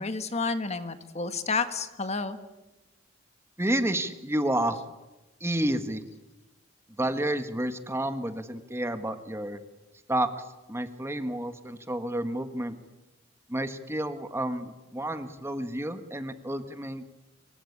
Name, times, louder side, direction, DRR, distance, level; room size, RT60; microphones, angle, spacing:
voice 1, 0.0-2.4, left 4 dB, 35° left, 9 dB, 1.6 m, -30 dB
voice 2, 3.6-4.8 5.4-6.0 7.0-9.6 10.1-10.3 10.7-12.8 13.5-17.0, right 1 dB, 15° right, 8 dB, 1.6 m, -30 dB
26.0 x 24.0 x 8.7 m, 1.0 s
head